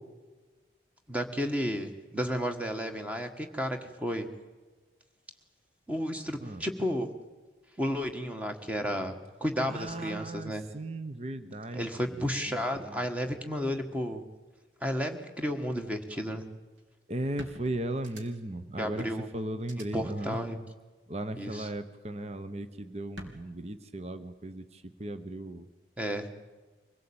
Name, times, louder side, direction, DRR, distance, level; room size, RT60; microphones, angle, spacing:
voice 1, 1.1-4.3 5.9-7.1 7.8-10.6 11.7-14.2 14.8-16.4 18.8-19.3 19.9-20.6 21.4-21.7 26.0-26.3, equal, 5° right, 5 dB, 1.6 m, -32 dB
voice 2, 9.7-13.4 17.1-19.1 19.3-20.4 21.1-25.7, right 1 dB, 35° right, 10 dB, 0.9 m, -37 dB
sound 1, 16.8-16.9 17.4-18.6 19.0-19.1 19.6-19.8 21.2-21.6 23.2-23.3, right 1 dB, 90° right, 3.0 m, -47 dB
24.5 x 17.0 x 8.8 m, 1.3 s
head